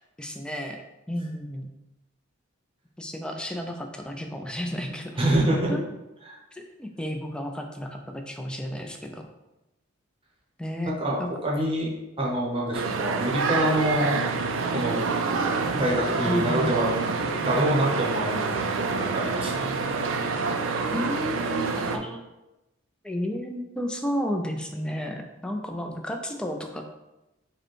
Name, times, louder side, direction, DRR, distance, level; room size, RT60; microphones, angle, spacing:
voice 1, 0.2-1.7 3.0-5.1 5.7-5.8 6.5-9.3 10.6-11.3 16.3-16.8 20.9-22.2 23.0-26.8, equal, 5° left, 3 dB, 0.4 m, -32 dB
voice 2, 5.2-5.7 6.3-6.4 11.0-11.9 12.2-14.2 14.7-15.1 15.7-16.9 17.4-19.7, right 1 dB, 30° right, -3 dB, 0.8 m, -26 dB
sound 1, 12.7-22.0, right 4 dB, 75° right, 0.4 m, -27 dB
4.9 x 2.2 x 4.5 m, 0.97 s
head